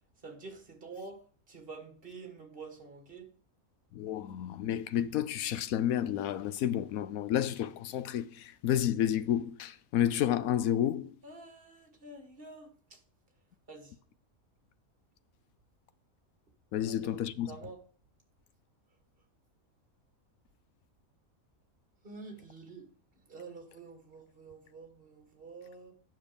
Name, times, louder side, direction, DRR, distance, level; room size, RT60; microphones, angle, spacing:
voice 1, 0.2-3.3 11.2-13.0 13.7-13.9 16.8-17.2 17.5-17.8 22.0-22.9 23.3-25.9, right 3 dB, 40° right, 2.1 m, -48 dB
voice 2, 3.9-11.1 16.7-17.5, left 11 dB, 80° left, 1.1 m, -30 dB
9.4 x 6.3 x 5.1 m
omnidirectional pair, 1.5 m